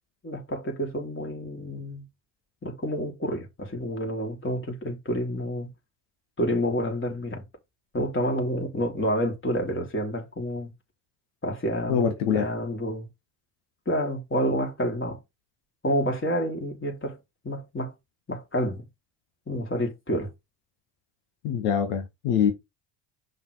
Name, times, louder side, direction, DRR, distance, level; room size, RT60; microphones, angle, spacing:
voice 1, 0.2-2.1 2.6-5.7 6.4-7.4 7.9-10.7 11.4-13.1 13.9-15.2 15.8-17.2 17.4-17.9 18.3-18.9 19.5-20.3, equal, 25° left, 3.5 m, -29 dB
voice 2, 11.9-12.4 21.4-22.5, left 8 dB, 75° left, 1.5 m, -24 dB
5.6 x 5.3 x 4.7 m
hypercardioid pair, 60°, 48 cm